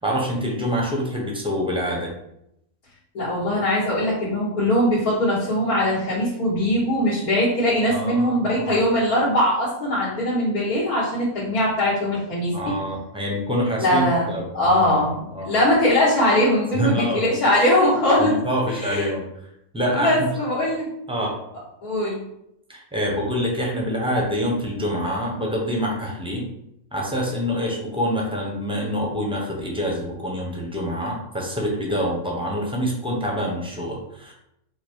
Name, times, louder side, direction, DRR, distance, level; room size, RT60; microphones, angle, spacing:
voice 1, 0.0-2.1 7.9-8.3 8.5-8.8 12.5-15.5 16.7-17.3 18.2-19.5 19.7-20.3 21.1-21.4 22.7-26.4 26.9-34.3, equal, 5° right, -1 dB, 0.6 m, -26 dB
voice 2, 3.1-12.6 13.8-14.3 14.5-15.2 15.4-18.3 18.7-19.1 19.9-20.9 21.8-22.2, left 1 dB, 80° left, -9 dB, 1.9 m, -21 dB
5.1 x 2.1 x 4.5 m, 0.79 s
omnidirectional pair, 1.6 m